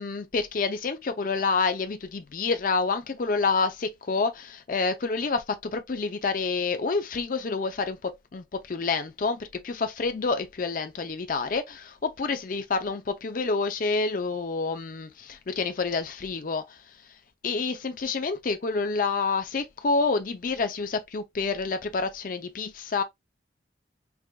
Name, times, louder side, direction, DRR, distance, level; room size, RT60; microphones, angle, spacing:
voice 1, 0.0-16.8 17.4-23.0, left 4 dB, 45° left, 0.5 m, -28 dB
4.7 x 2.5 x 2.2 m
head